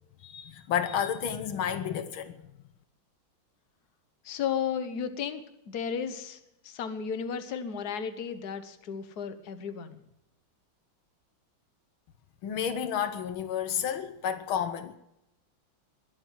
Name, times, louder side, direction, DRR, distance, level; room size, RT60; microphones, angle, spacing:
voice 1, 0.2-2.4 12.4-14.9, left 8 dB, 80° left, 1.8 m, -31 dB
voice 2, 4.2-6.4 6.6-10.0, left 7 dB, 55° left, 1.7 m, -34 dB
21.0 x 8.6 x 7.6 m
omnidirectional pair, 2.2 m